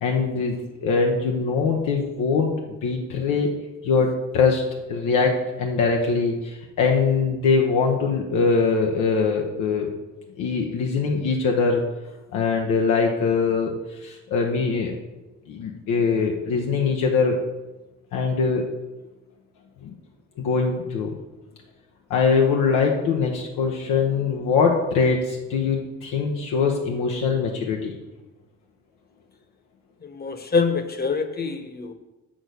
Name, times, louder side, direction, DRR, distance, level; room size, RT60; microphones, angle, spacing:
voice 1, 0.0-2.5 2.8-3.5 3.8-9.9 10.4-11.8 12.3-13.7 14.0-14.9 15.5-17.4 18.1-18.7 19.8-19.9 20.4-21.1 22.1-27.9, left 5 dB, 90° left, 1 dB, 1.0 m, -22 dB
voice 2, 30.1-31.9, left 4 dB, 30° left, 8 dB, 1.1 m, -25 dB
6.7 x 6.3 x 6.4 m, 1.1 s
cardioid pair, 90°, 30 cm